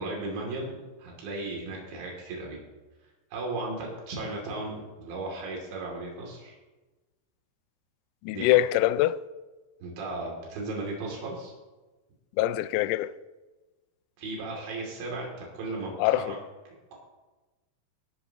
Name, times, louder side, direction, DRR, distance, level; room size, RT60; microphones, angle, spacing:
voice 1, 0.0-2.6 3.3-6.6 8.3-8.6 9.8-11.5 14.2-16.4, right 2 dB, 85° right, 5.1 m, -36 dB
voice 2, 8.2-9.2 12.4-13.1 16.0-16.3, left 14 dB, 85° left, 2.6 m, -24 dB
23.0 x 12.0 x 3.0 m
omnidirectional pair, 5.1 m